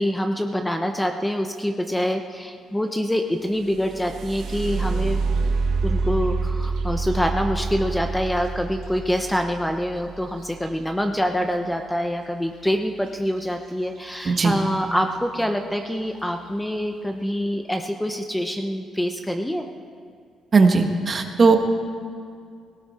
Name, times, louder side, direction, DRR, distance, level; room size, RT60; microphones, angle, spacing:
voice 1, 0.0-5.2 5.8-19.7, equal, 5° left, 5 dB, 0.8 m, -25 dB
sound 1, 3.5-11.3 13.4-13.5 14.0-14.5 15.1-15.2 15.7-16.1, right 4 dB, 80° right, 1.5 m, -27 dB
voice 2, 14.2-14.6 20.5-21.6, right 4 dB, 40° right, 5 dB, 1.5 m, -17 dB
18.0 x 18.0 x 4.3 m, 2.3 s
cardioid pair, 100°, 0 cm